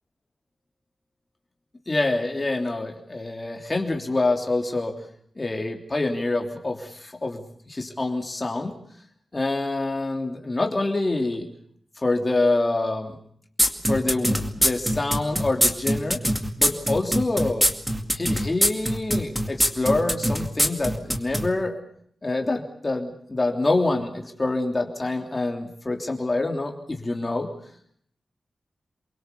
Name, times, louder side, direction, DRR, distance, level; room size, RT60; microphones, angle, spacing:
voice 1, 1.9-5.0 5.4-8.7 9.3-11.5 12.0-13.2 13.8-16.2 16.6-17.6 18.1-21.8 22.2-27.5, left 2 dB, 25° left, 3 dB, 3.0 m, -26 dB
sound 1, 13.6-21.5, equal, 5° right, 2.3 m, -22 dB
28.0 x 23.5 x 7.0 m, 0.64 s
wide cardioid pair, 175°, 0 cm